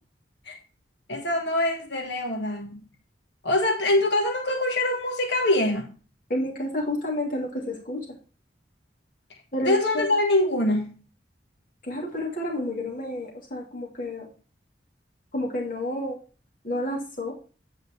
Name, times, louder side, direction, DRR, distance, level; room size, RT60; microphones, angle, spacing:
voice 1, 1.1-2.9 3.4-5.9 9.6-11.0, left 1 dB, 70° left, 2 dB, 1.5 m, -24 dB
voice 2, 6.3-8.1 9.5-10.1 11.8-14.3 15.3-16.2 16.6-17.3, left 1 dB, 45° left, -2 dB, 2.8 m, -30 dB
9.3 x 5.1 x 4.6 m, 0.37 s
head